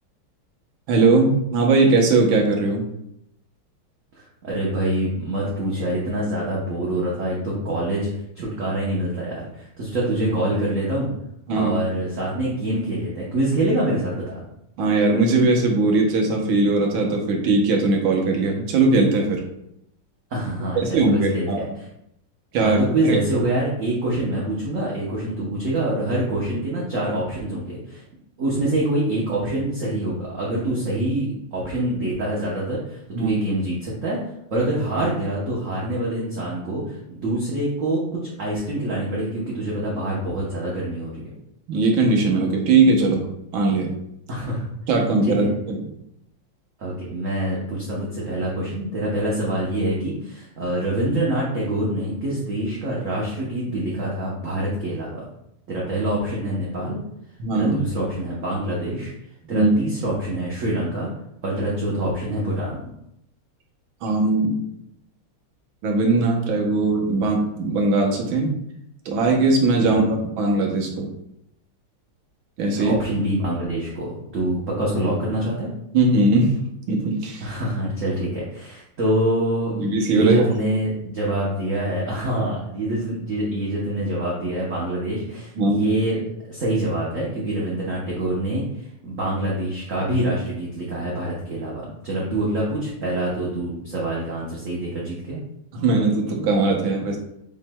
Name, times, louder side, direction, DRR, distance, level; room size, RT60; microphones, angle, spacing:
voice 1, 0.9-2.8 11.5-11.8 14.8-19.4 20.8-21.7 22.5-22.8 23.0-23.2 33.1-33.3 41.7-43.9 44.9-45.8 57.4-57.8 59.5-59.7 64.0-64.6 65.8-68.5 69.0-71.1 72.6-72.9 75.9-76.6 76.9-77.5 79.8-80.5 85.6-85.9 95.7-97.2, right 3 dB, 70° right, 1 dB, 1.6 m, -20 dB
voice 2, 4.1-8.1 8.4-11.1 11.5-14.4 20.3-21.9 22.5-28.0 28.4-34.2 34.5-41.3 44.3-44.7 45.2-45.5 46.8-55.2 55.7-57.0 57.5-59.1 59.5-61.1 61.4-62.8 69.8-70.2 72.7-75.7 77.4-95.4, right 1 dB, 55° right, -5 dB, 0.9 m, -25 dB
7.2 x 3.1 x 2.2 m, 0.78 s
omnidirectional pair, 2.4 m